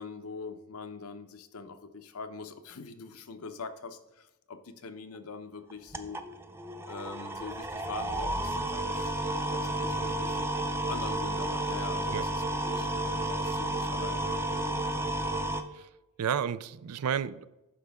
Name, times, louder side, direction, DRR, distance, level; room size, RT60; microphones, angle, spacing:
voice 1, 0.0-6.2 6.9-9.2 9.5-10.5 10.9-14.9, left 4 dB, 70° left, 8 dB, 0.8 m, -43 dB
sound 1, 5.7-15.6, right 1 dB, 10° right, 0.5 m, -32 dB
voice 2, 16.2-17.5, right 8 dB, 80° right, 16 dB, 0.4 m, -31 dB
9.7 x 6.3 x 3.6 m, 0.99 s
head